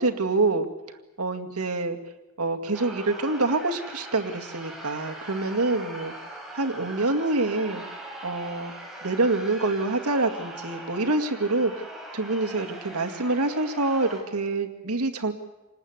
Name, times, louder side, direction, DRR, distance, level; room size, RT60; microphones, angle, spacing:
voice 1, 0.0-0.7 1.2-2.0 2.4-6.1 6.5-7.8 8.2-8.7 9.0-11.7 12.1-15.3, right 2 dB, 85° right, 4 dB, 2.1 m, -26 dB
sound 1, 2.7-14.2, right 1 dB, ahead, 4.8 m, -41 dB
27.5 x 19.5 x 8.1 m, 1.1 s
head